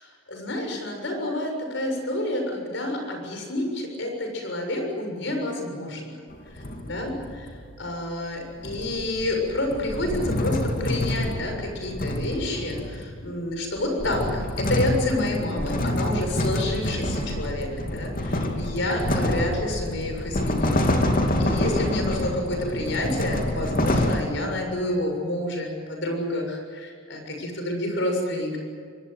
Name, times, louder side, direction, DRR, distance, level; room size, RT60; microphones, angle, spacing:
voice 1, 0.0-6.2 6.5-7.5 7.8-21.1 21.4-28.6, left 1 dB, 60° left, 3 dB, 6.9 m, -29 dB
sound 1, 6.3-7.7 8.6-13.2 13.8-24.2, left 1 dB, 45° left, 2.8 m, -27 dB
24.5 x 20.0 x 9.4 m, 2.2 s
head